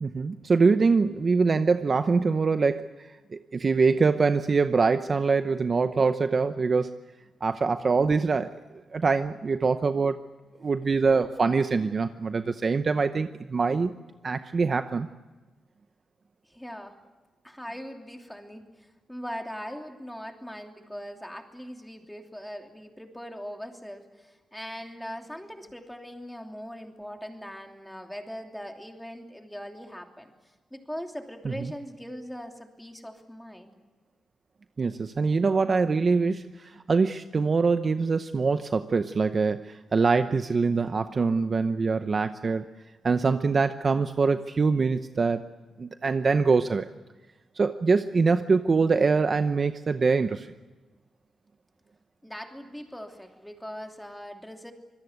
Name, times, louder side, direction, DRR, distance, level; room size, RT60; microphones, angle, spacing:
voice 1, 0.0-6.9 7.4-8.5 8.9-10.2 10.6-13.9 14.2-15.1 31.4-31.7 34.8-42.6 43.0-45.4 45.8-46.9 47.6-50.5, right 4 dB, 35° right, 9 dB, 0.8 m, -24 dB
voice 2, 16.5-17.0 17.4-30.3 30.7-33.7 52.2-54.7, equal, 5° left, 3 dB, 2.9 m, -40 dB
25.5 x 22.0 x 8.0 m, 1.2 s
wide cardioid pair, 135°, 0 cm